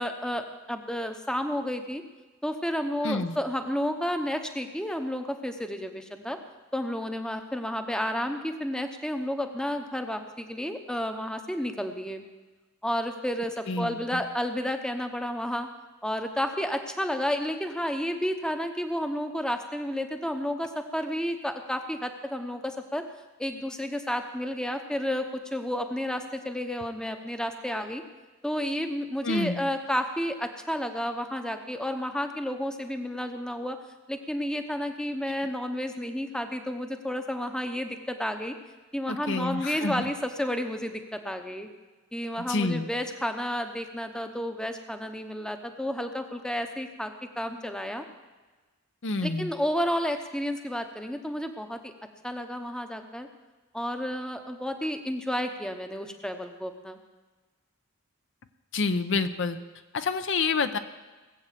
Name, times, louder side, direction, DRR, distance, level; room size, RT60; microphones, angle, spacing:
voice 1, 0.0-2.0 2.4-6.4 6.7-12.2 12.8-15.7 16.0-23.0 23.4-28.0 28.4-33.8 34.1-38.5 38.9-41.7 42.1-48.0 49.2-51.9 52.2-53.3 53.7-57.0, equal, 5° left, 6 dB, 0.8 m, -31 dB
voice 2, 3.0-3.4 13.7-14.2 29.2-29.6 39.1-40.1 42.5-42.9 49.0-49.5 58.7-59.6 59.9-60.8, left 3 dB, 55° left, 10 dB, 0.7 m, -28 dB
19.0 x 7.9 x 7.5 m, 1.3 s
head